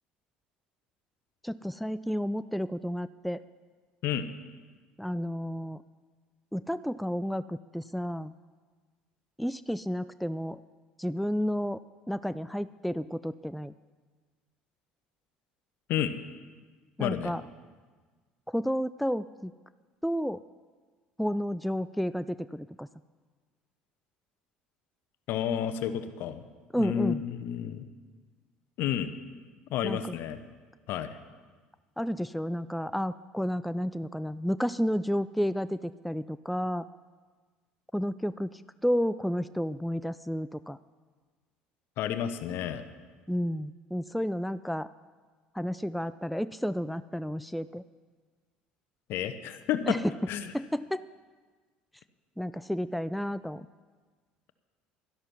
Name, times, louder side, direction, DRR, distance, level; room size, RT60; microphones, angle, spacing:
voice 1, 1.4-3.4 5.0-5.8 6.5-8.3 9.4-10.6 11.0-11.8 12.1-13.7 17.0-17.4 18.5-19.5 20.0-20.4 21.2-22.9 26.7-27.2 29.8-30.0 32.0-36.9 37.9-40.8 43.3-44.9 45.5-47.8 49.9-50.1 50.5-51.0 52.4-53.7, equal, ahead, 14 dB, 0.3 m, -31 dB
voice 2, 17.0-17.3 25.3-26.5 26.8-27.8 28.8-29.1 29.7-30.4 30.9-31.1 42.0-42.9 49.1-50.0 50.3-50.5, left 9 dB, 60° left, 11 dB, 0.9 m, -31 dB
12.5 x 11.0 x 6.0 m, 1.4 s
hypercardioid pair, 70°, 4 cm